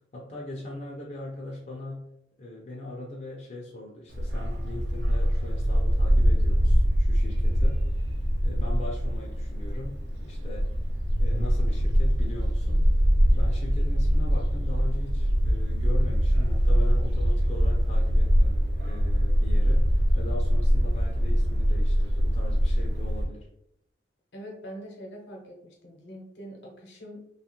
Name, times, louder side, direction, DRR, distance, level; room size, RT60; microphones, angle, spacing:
voice 1, 0.1-10.0 10.2-10.7 11.2-12.9 13.3-23.5, left 1 dB, 40° left, -3 dB, 0.5 m, -40 dB
Bark, 4.1-23.2, equal, 75° right, 0.5 m, -23 dB
voice 2, 24.3-27.3, equal, 80° left, 0 dB, 0.8 m, -43 dB
2.8 x 2.3 x 2.9 m, 0.76 s
head